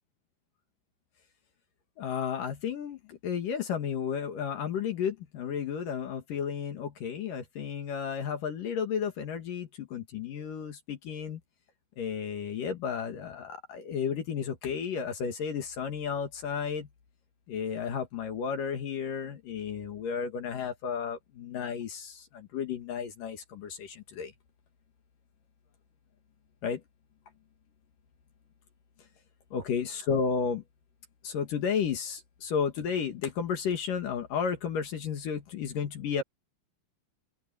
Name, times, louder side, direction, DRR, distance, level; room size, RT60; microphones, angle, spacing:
voice 1, 2.0-11.4 12.0-16.9 17.5-24.3 26.6-26.8 29.5-30.6 31.2-36.2, left 7 dB, 55° left, 2.8 m, -33 dB
open air
omnidirectional pair, 5.6 m